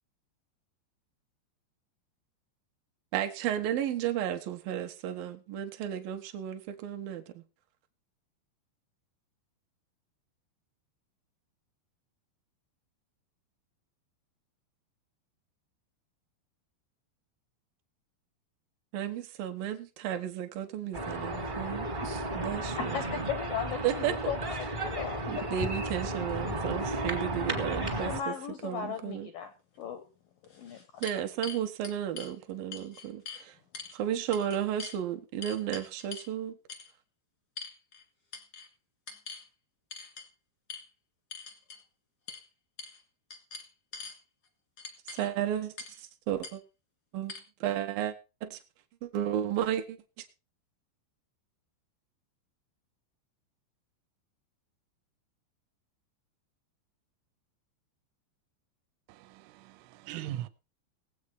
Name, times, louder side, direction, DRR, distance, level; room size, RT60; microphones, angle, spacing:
voice 1, 3.1-7.4 18.9-23.3 23.8-24.3 25.3-28.3 28.6-29.3 31.0-33.6 33.9-36.6 45.1-46.6 47.1-47.3 47.6-48.1 48.4-48.6 49.0-50.3, right 10 dB, 70° right, 2.3 m, -33 dB
sound 1, 20.9-28.2, right 2 dB, 25° right, 1.1 m, -33 dB
voice 2, 22.8-25.4 28.0-29.5 29.8-30.0 30.5-30.9, left 8 dB, 80° left, 2.0 m, -36 dB
sound 2, 29.8-29.9 30.4-32.3 32.7-33.4 33.7-34.0 34.3-35.0 35.4-36.3 36.7-36.9 37.6-38.0 38.3-38.7 39.1-39.4 39.9-40.3 40.7-40.8 41.3-41.8 42.3-42.4 42.8-43.0 43.3-44.2 44.8-45.3 45.8-46.0 46.4-46.5 47.3-47.4, left 5 dB, 50° left, 1.1 m, -43 dB
voice 3, 59.1-60.5, right 13 dB, 90° right, 3.3 m, -40 dB
19.0 x 8.3 x 4.5 m
omnidirectional pair, 5.5 m